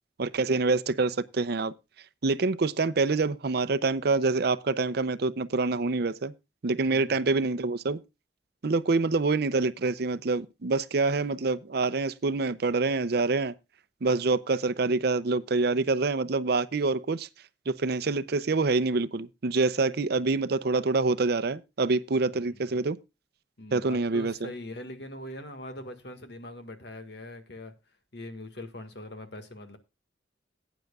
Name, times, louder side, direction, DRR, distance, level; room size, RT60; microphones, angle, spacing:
voice 1, 0.2-1.7 2.2-6.3 6.6-8.0 8.6-13.5 14.0-17.3 17.7-23.0 23.7-24.5, right 3 dB, 60° right, 0.6 m, -26 dB
voice 2, 6.9-7.2 22.3-22.8 23.6-27.7 28.1-29.8, left 1 dB, 65° left, 1.7 m, -42 dB
17.5 x 9.2 x 2.3 m
head